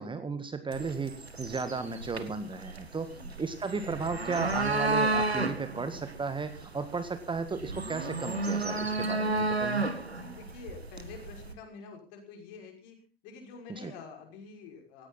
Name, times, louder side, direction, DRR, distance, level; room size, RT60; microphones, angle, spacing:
voice 1, 0.0-3.1 3.4-9.9 13.8-13.9, right 4 dB, 15° right, 10 dB, 1.7 m, -35 dB
sound 1, 0.7-11.5, right 3 dB, 85° right, 1.6 m, -32 dB
voice 2, 3.0-3.3 10.1-13.0 13.2-15.1, left 5 dB, 50° left, 3 dB, 6.0 m, -48 dB
18.5 x 15.5 x 4.1 m, 0.34 s
figure-of-eight pair, 75°, 31 cm